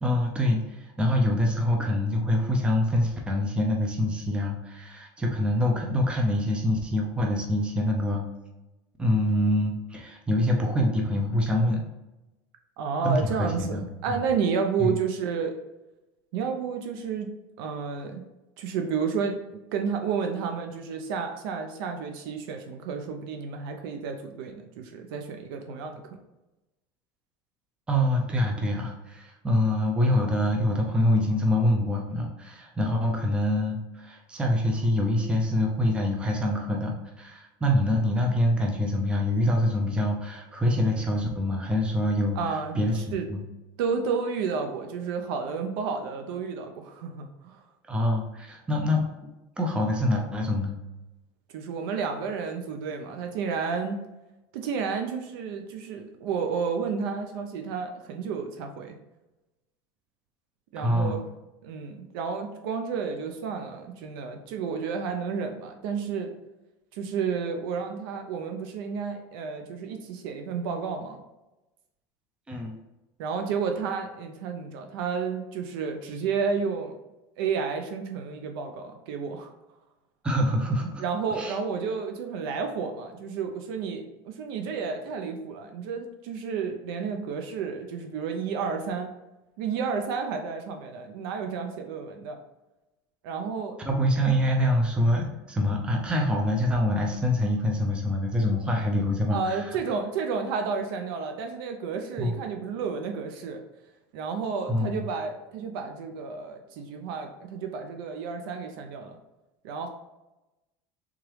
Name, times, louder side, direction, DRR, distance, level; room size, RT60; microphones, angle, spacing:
voice 1, 0.0-8.2 9.0-11.8 13.0-14.2 14.8-14.9 27.9-42.4 42.8-43.4 47.9-49.3 49.6-50.7 60.8-61.2 72.5-72.7 80.2-81.0 81.3-81.6 93.9-99.7 102.2-102.3 104.7-105.0, left 1 dB, 10° right, 1 dB, 0.5 m, -25 dB
voice 2, 12.8-15.5 16.3-18.2 18.6-19.4 19.7-26.0 42.4-43.3 43.8-47.6 51.5-54.0 54.5-59.0 60.7-61.2 61.6-66.3 66.9-71.2 73.2-76.9 77.4-79.5 81.0-89.1 89.6-92.4 93.2-93.8 99.3-103.6 104.1-109.2 109.6-109.9, right 5 dB, 75° right, 5 dB, 0.5 m, -31 dB
3.6 x 3.0 x 3.2 m, 1.0 s
supercardioid pair, 125°, 12 cm